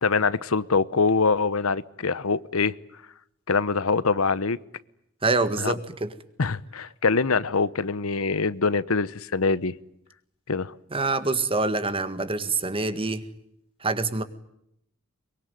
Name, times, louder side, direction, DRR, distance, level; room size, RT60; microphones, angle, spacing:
voice 1, 0.0-2.7 3.5-4.6 5.6-5.7 6.4-9.7 10.5-10.7, left 4 dB, 85° left, 17 dB, 0.9 m, -24 dB
voice 2, 5.2-6.1 10.9-13.3 13.8-14.2, right 3 dB, 25° right, 11 dB, 1.8 m, -26 dB
23.5 x 23.0 x 9.4 m, 0.76 s
head